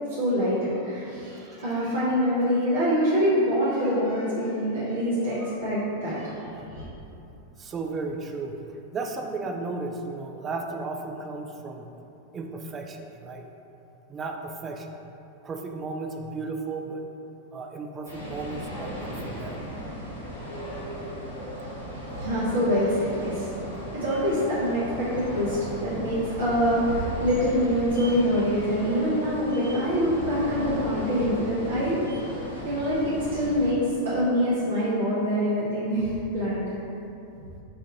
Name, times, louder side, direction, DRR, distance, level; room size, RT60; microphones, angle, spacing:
voice 1, 0.1-6.3 6.7-6.8 22.1-23.5 23.9-32.3 32.6-36.7, equal, 65° right, -9 dB, 0.7 m, -25 dB
voice 2, 7.6-8.6 8.9-11.9 12.3-13.5 14.1-15.0 15.4-17.0 17.5-19.8, right 3 dB, 25° right, 3 dB, 0.3 m, -34 dB
sound 1, 18.0-33.7, equal, 80° left, 0.7 m, -36 dB
4.3 x 2.4 x 2.8 m, 2.8 s
figure-of-eight pair, 90°, 0 cm